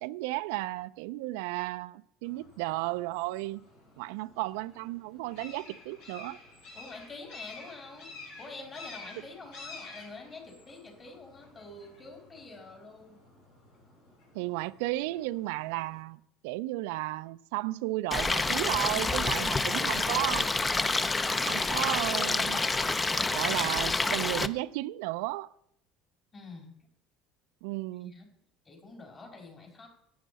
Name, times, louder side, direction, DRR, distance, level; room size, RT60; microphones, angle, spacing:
voice 1, 0.0-3.6 4.0-6.4 14.3-20.5 21.4-22.6 23.3-25.5 27.6-28.1, right 19 dB, 75° right, 0.3 m, -34 dB
sound 1, 2.2-16.0, left 3 dB, 75° left, 4.8 m, -51 dB
voice 2, 6.7-8.1 8.4-13.2 26.3-26.7 28.0-28.3 28.6-29.9, left 3 dB, 35° left, 4.9 m, -47 dB
Stream, 18.1-24.5, left 3 dB, 20° left, 0.6 m, -28 dB
11.0 x 8.5 x 4.1 m
hypercardioid pair, 75°, 0 cm